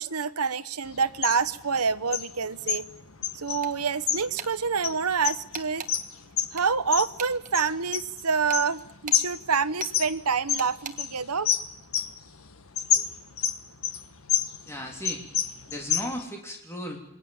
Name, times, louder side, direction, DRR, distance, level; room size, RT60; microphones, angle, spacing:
voice 1, 0.0-2.8 3.3-5.8 6.5-11.5, right 5 dB, 90° right, 13 dB, 1.1 m, -27 dB
sound 1, 0.9-16.2, left 9 dB, 70° left, 1.4 m, -30 dB
sound 2, 3.6-4.0 4.4-4.5 5.5-5.9 6.6-7.6 8.5-9.3 9.8-9.9 10.6-11.0, right 7 dB, 35° right, 1.4 m, -39 dB
voice 2, 14.7-15.2 15.7-17.0, left 1 dB, 10° left, 1 dB, 3.3 m, -36 dB
27.0 x 23.0 x 7.2 m, 0.76 s
head